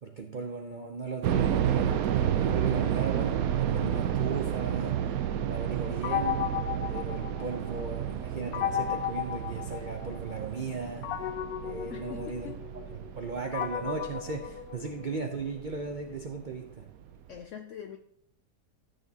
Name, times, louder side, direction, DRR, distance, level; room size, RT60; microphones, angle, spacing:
voice 1, 0.0-5.0 5.5-6.6 6.9-11.3 11.6-12.5 12.9-16.9, right 4 dB, 80° right, 4 dB, 0.4 m, -37 dB
sound 1, 1.2-16.1 16.4-16.5 17.1-17.4, right 9 dB, 65° right, 0.9 m, -31 dB
sound 2, 6.0-7.8 8.5-10.3 11.0-15.3, left 10 dB, 90° left, 1.3 m, -34 dB
voice 2, 11.9-12.6 17.3-18.0, left 8 dB, 75° left, 6 dB, 0.7 m, -43 dB
13.5 x 6.8 x 2.8 m, 0.71 s
omnidirectional pair, 1.9 m